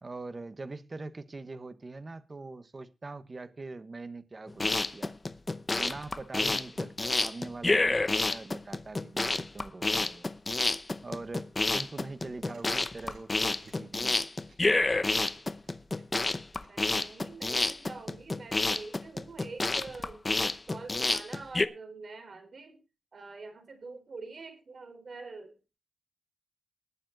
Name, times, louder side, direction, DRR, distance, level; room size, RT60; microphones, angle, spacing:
voice 1, 0.0-5.1 5.7-10.3 11.0-14.2, right 3 dB, 30° right, 1.1 m, -43 dB
sound 1, 4.5-21.7, left 2 dB, 25° left, 0.8 m, -29 dB
sound 2, 12.3-14.7 15.2-17.1, right 5 dB, 90° right, 5.7 m, -61 dB
voice 2, 16.7-22.8 23.1-25.6, right 4 dB, 50° right, 4.3 m, -45 dB
20.0 x 7.3 x 4.0 m
wide cardioid pair, 120°, 0 cm